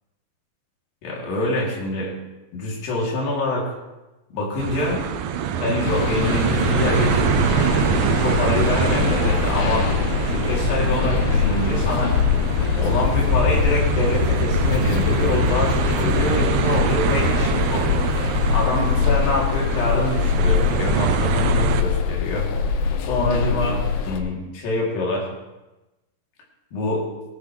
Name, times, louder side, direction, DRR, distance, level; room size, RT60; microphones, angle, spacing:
voice 1, 1.0-2.1 2.5-3.7 4.3-5.0 5.6-7.5 8.2-9.9 10.3-12.2 12.8-18.0 18.5-22.5 23.0-25.3 26.7-27.1, left 2 dB, 60° left, -3 dB, 4.4 m, -25 dB
sound 1, 4.6-21.8, right 8 dB, 80° right, 2.1 m, -25 dB
sound 2, 5.8-24.2, left 6 dB, 90° left, 1.7 m, -23 dB
19.0 x 13.0 x 3.2 m, 1.0 s
omnidirectional pair, 4.8 m